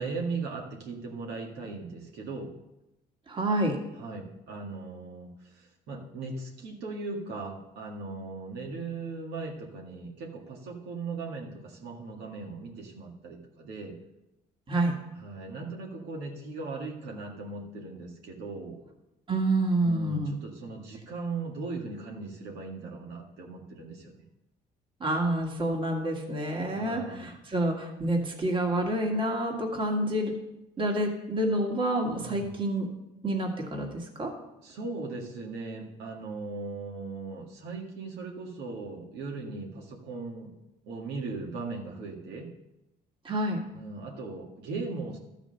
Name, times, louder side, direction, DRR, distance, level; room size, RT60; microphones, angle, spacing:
voice 1, 0.0-2.5 3.9-5.3 5.5-13.9 15.2-18.8 19.8-24.2 26.6-27.3 32.2-32.5 34.6-40.5 40.9-42.5 43.7-45.2, right 3 dB, 80° right, 0 dB, 1.9 m, -38 dB
voice 2, 3.3-3.8 14.7-14.9 19.3-20.3 25.0-30.3 30.8-32.9 33.2-34.3 43.2-43.6, right 1 dB, 30° right, 1 dB, 1.8 m, -28 dB
13.0 x 5.1 x 6.5 m, 0.92 s
cardioid pair, 110°, 17 cm